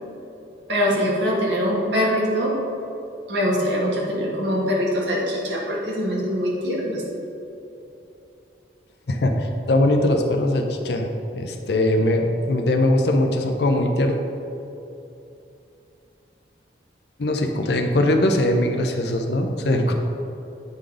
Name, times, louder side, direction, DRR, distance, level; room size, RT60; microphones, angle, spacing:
voice 1, 0.7-2.6 3.3-7.0, equal, 75° right, -3 dB, 1.6 m, -23 dB
voice 2, 9.1-14.2 17.2-19.9, left 1 dB, 65° left, 3 dB, 0.6 m, -21 dB
8.4 x 3.9 x 4.9 m, 2.8 s
head